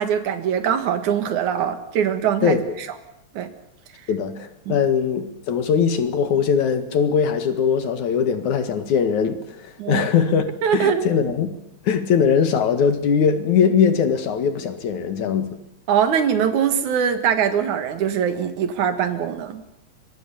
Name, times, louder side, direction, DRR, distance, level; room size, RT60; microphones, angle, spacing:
voice 1, 0.0-2.6 3.3-3.5 4.7-4.8 9.8-10.1 10.6-11.1 15.9-19.6, right 8 dB, 90° right, 9 dB, 3.1 m, -22 dB
voice 2, 4.1-11.5 11.8-15.6, left 7 dB, 90° left, 9 dB, 3.3 m, -21 dB
25.5 x 22.5 x 7.1 m, 0.79 s
omnidirectional pair, 3.3 m